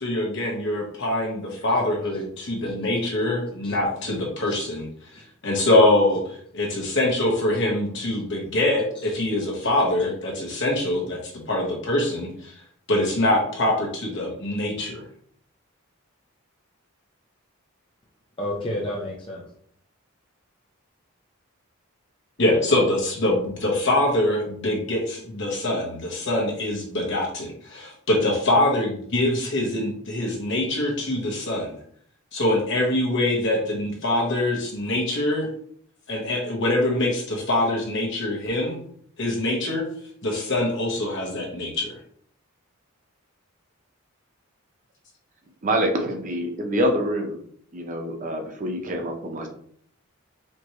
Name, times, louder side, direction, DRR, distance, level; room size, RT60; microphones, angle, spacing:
voice 1, 0.0-4.9 5.4-12.5 12.9-15.0 22.4-31.8 32.3-35.5 36.1-38.8 39.2-39.8 40.2-41.9, left 1 dB, 55° left, -2 dB, 1.2 m, -24 dB
voice 2, 2.6-3.1 3.6-4.2 4.4-4.6 5.1-5.2 7.9-8.2 8.9-9.5 10.0-10.1 18.4-19.5, left 1 dB, 25° left, -4 dB, 0.6 m, -34 dB
voice 3, 45.6-47.4 47.7-49.5, equal, 35° right, 3 dB, 0.6 m, -26 dB
4.3 x 3.0 x 3.0 m, 0.62 s
head